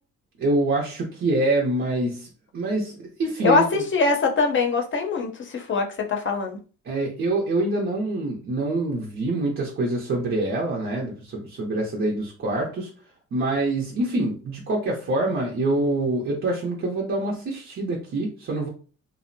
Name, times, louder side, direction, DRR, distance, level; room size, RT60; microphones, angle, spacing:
voice 1, 0.4-3.8 6.8-12.9 13.3-18.7, right 2 dB, 45° right, -2 dB, 0.6 m, -25 dB
voice 2, 3.4-6.6, left 4 dB, 40° left, 3 dB, 0.6 m, -22 dB
2.6 x 2.0 x 2.6 m, 0.38 s
cardioid pair, 90°, 30 cm